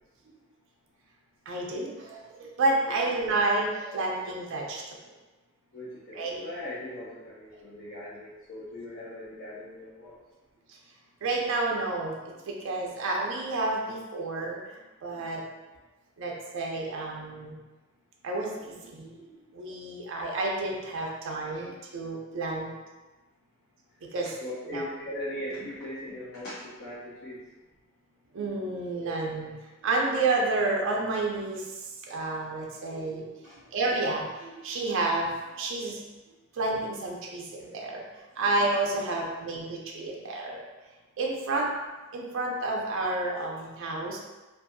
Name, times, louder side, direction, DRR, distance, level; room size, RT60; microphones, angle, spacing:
voice 1, 1.5-4.8 6.1-6.4 10.7-10.8 11.2-15.4 16.2-17.6 18.2-22.7 24.1-24.3 24.6-24.9 28.3-29.5 29.8-33.3 33.7-36.0 36.5-38.0 38.4-40.6 41.2-41.7 42.1-44.2, right 2 dB, 60° right, -1 dB, 0.4 m, -30 dB
voice 2, 5.7-10.2 24.4-27.4 33.4-33.6, left 1 dB, 50° left, -10 dB, 0.5 m, -39 dB
2.6 x 2.3 x 2.5 m, 1.2 s
head